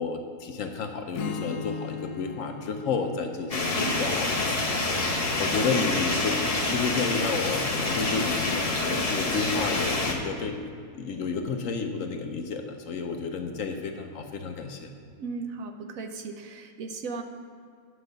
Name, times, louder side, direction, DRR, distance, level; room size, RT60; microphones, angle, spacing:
voice 1, 0.0-5.1 5.4-6.4 6.7-14.9, left 4 dB, 65° left, 5 dB, 1.0 m, -31 dB
Strum, 1.1-5.3, left 6 dB, 90° left, 1.3 m, -39 dB
sound 1, 3.5-10.1, left 2 dB, 30° left, 0.9 m, -27 dB
voice 2, 15.2-17.2, right 4 dB, 65° right, 6 dB, 1.0 m, -36 dB
9.9 x 5.3 x 6.6 m, 2.3 s
omnidirectional pair, 1.6 m